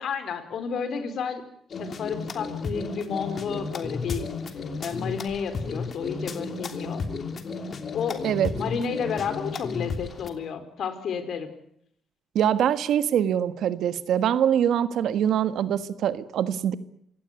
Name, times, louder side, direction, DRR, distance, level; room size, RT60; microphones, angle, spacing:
voice 1, 0.0-1.4 1.8-4.3 4.8-7.0 7.9-8.3 8.6-11.5, left 6 dB, 65° left, 10 dB, 4.3 m, -31 dB
sound 1, 1.7-10.3, left 4 dB, 45° left, 3.1 m, -33 dB
voice 2, 12.3-16.8, right 9 dB, 75° right, 13 dB, 1.5 m, -24 dB
27.0 x 17.0 x 9.7 m, 0.70 s
cardioid pair, 90°, 0 cm